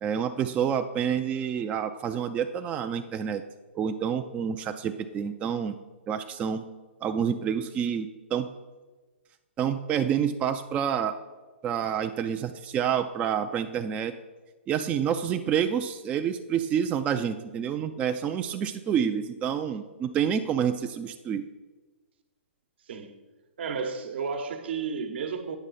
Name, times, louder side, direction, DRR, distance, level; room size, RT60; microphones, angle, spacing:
voice 1, 0.0-3.4 3.7-5.8 6.1-6.6 7.0-8.5 9.6-11.2 11.6-14.1 14.7-21.5, right 8 dB, 20° right, 0.3 m, -28 dB
voice 2, 23.6-25.6, right 5 dB, 60° right, 1.0 m, -32 dB
8.9 x 6.1 x 4.1 m
hypercardioid pair, 130°, 7 cm